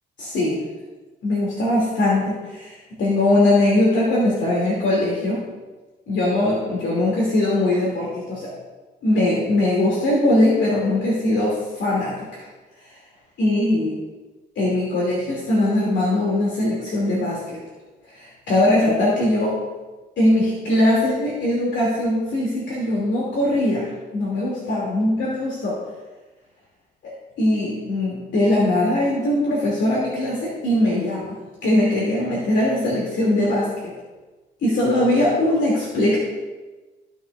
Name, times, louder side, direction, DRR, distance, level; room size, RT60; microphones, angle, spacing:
voice 1, 0.2-0.6 1.2-5.4 6.1-8.5 9.0-12.4 13.4-14.0 14.6-17.6 18.1-19.6 20.2-25.8 27.0-27.1 27.4-33.9 34.6-36.2, left 1 dB, 65° left, -6 dB, 2.6 m, -21 dB
15.5 x 6.0 x 2.5 m, 1.2 s
cardioid pair, 90°, 20 cm